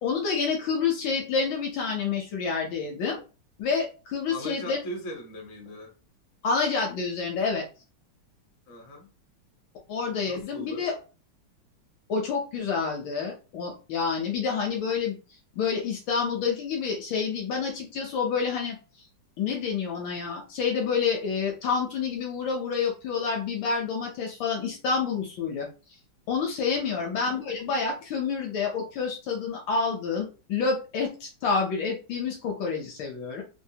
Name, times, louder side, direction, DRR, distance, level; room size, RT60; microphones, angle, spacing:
voice 1, 0.0-3.2 3.6-4.8 6.4-7.7 9.9-10.9 12.1-15.2 15.6-18.8 19.4-25.7 26.3-33.4, left 5 dB, 70° left, 1.3 m, -28 dB
voice 2, 4.3-5.9 8.7-9.1 10.2-10.9 26.7-27.1, equal, 45° left, 0.8 m, -39 dB
3.7 x 2.0 x 2.7 m
omnidirectional pair, 2.4 m